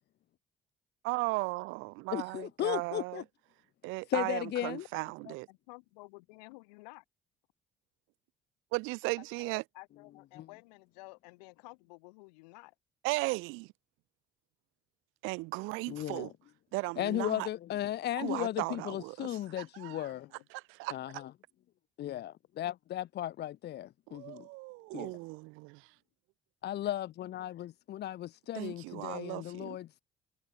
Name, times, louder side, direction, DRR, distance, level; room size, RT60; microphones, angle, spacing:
voice 1, 1.0-3.2 3.8-5.5 8.7-9.6 13.0-13.7 15.2-16.3 16.7-17.5 18.2-20.1 20.5-21.0 24.1-25.4 28.5-29.8, right 25 dB, 75° right, 1.1 m, -36 dB
voice 2, 2.1-3.2 4.1-4.8 10.4-10.5 15.9-16.3 17.0-20.3 20.9-21.3 22.0-24.5 24.9-25.1 26.6-30.0, left 12 dB, 55° left, 0.6 m, -36 dB
voice 3, 4.9-7.0 9.2-12.7 20.1-20.4, left 28 dB, 85° left, 3.3 m, -53 dB
hypercardioid pair, 55°, 21 cm